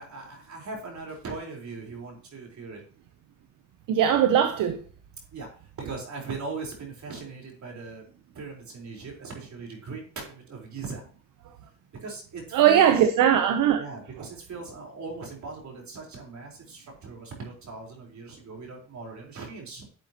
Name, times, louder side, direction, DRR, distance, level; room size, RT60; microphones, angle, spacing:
voice 1, 0.0-2.8 5.3-8.0 8.3-11.0 12.0-13.0 13.7-19.9, right 4 dB, 65° right, 4.2 m, -39 dB
voice 2, 3.9-4.8 12.5-13.8, right 9 dB, 90° right, 0.9 m, -20 dB
11.5 x 7.7 x 3.0 m
cardioid pair, 80°, 31 cm